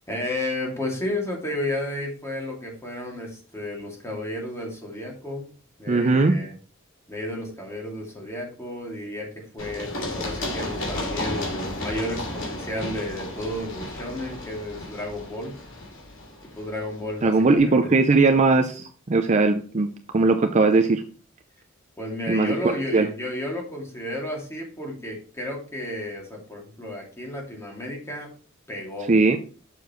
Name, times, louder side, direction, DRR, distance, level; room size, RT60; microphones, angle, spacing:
voice 1, 0.1-5.5 5.8-6.5 7.1-15.5 16.6-17.7 22.0-28.3 28.7-29.1, left 1 dB, 15° left, -1 dB, 2.5 m, -32 dB
voice 2, 5.9-6.4 17.2-19.9 20.1-21.0 22.3-22.5 22.9-23.1 29.1-29.4, right 3 dB, 35° right, 7 dB, 0.5 m, -19 dB
Run, 9.6-17.2, left 1 dB, 65° left, 3.0 m, -33 dB
7.0 x 6.8 x 3.1 m, 0.39 s
head